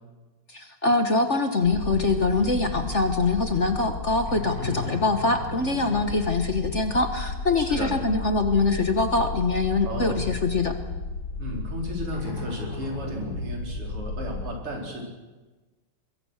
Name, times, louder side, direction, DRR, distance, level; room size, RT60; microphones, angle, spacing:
voice 1, 0.5-10.8, left 3 dB, 35° left, 7 dB, 1.5 m, -24 dB
sound 1, 1.6-14.5, left 3 dB, 60° left, 4.7 m, -34 dB
voice 2, 7.6-7.9 9.8-10.2 11.4-15.0, equal, 85° right, 0 dB, 5.5 m, -34 dB
23.5 x 22.0 x 6.6 m, 1.2 s
omnidirectional pair, 2.4 m